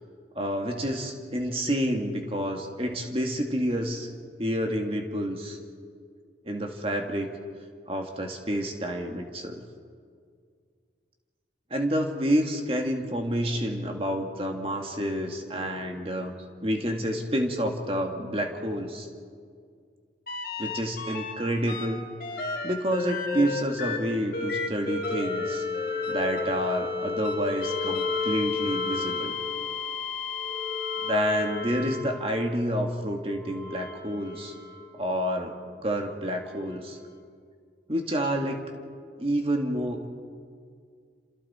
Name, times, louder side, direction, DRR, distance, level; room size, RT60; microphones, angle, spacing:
voice 1, 0.4-4.1 4.4-5.6 6.4-7.3 7.9-9.6 11.7-16.3 16.6-19.1 20.6-22.0 22.6-25.7 26.1-29.4 31.0-34.5 35.0-35.6 35.8-37.0 37.9-38.7 39.2-40.1, equal, 30° right, 3 dB, 2.0 m, -29 dB
sound 1, 20.3-21.3 21.7-32.4 33.3-34.9 36.6-36.7, left 4 dB, 50° left, 2.6 m, -32 dB
28.5 x 27.5 x 4.4 m, 2.1 s
head